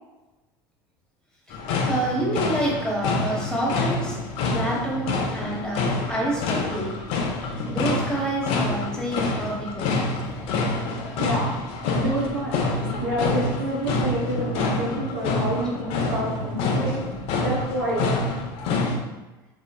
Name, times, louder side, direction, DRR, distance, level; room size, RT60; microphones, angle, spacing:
sound 1, 1.5-19.0, left 3 dB, 55° left, 0.5 m, -27 dB
voice 1, 1.5-4.2 4.5-7.0 7.4-10.2, right 1 dB, 5° left, -4 dB, 0.9 m, -28 dB
voice 2, 11.9-12.6 13.0-17.0 17.4-18.1, right 1 dB, 75° right, -5 dB, 1.1 m, -28 dB
3.0 x 2.6 x 2.2 m, 1.1 s
hypercardioid pair, 85°, 12 cm